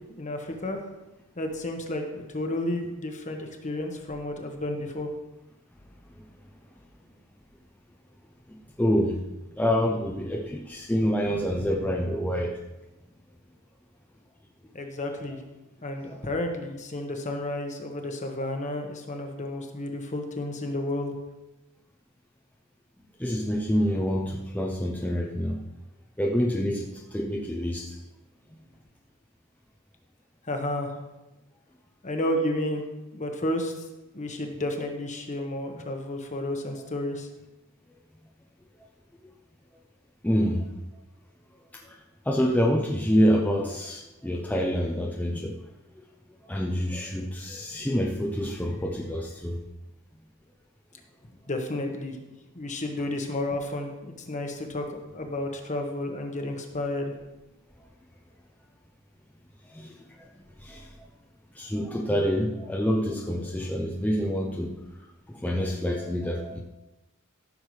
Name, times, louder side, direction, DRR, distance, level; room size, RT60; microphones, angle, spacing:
voice 1, 0.2-0.8 1.4-5.1 14.7-15.4 15.8-21.1 30.5-31.0 32.0-32.8 33.1-33.7 34.1-37.3 51.5-52.2 52.5-57.1, left 1 dB, 35° left, 4 dB, 1.2 m, -31 dB
voice 2, 8.8-9.2 9.6-12.6 16.1-16.2 23.2-25.6 26.2-28.0 40.2-40.7 41.9-42.0 42.3-45.6 46.0-46.1 46.5-49.6 59.7-59.9 60.6-60.9 61.6-64.7 65.3-66.6, equal, 5° left, -1 dB, 0.6 m, -27 dB
14.5 x 6.6 x 3.2 m, 1.0 s
head